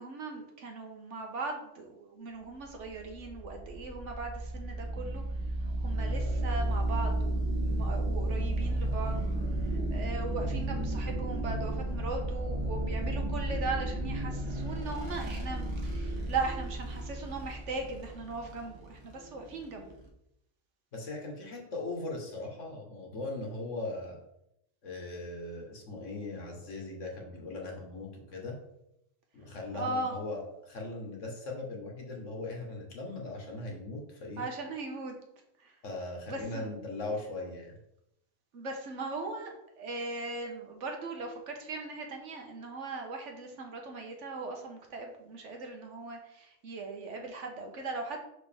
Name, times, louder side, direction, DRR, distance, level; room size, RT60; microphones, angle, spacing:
voice 1, 0.0-5.2 5.8-9.2 9.6-20.0 29.7-30.1 34.4-35.2 35.6-35.7 36.3-36.7 38.5-48.2, right 3 dB, 65° right, 3 dB, 1.2 m, -39 dB
sound 1, 2.7-20.1, right 1 dB, 25° right, 0.9 m, -33 dB
voice 2, 20.9-24.2 24.8-28.6 29.3-34.4 35.8-37.8, left 2 dB, 65° left, 1 dB, 1.7 m, -39 dB
6.1 x 4.9 x 3.4 m, 0.82 s
omnidirectional pair, 1.4 m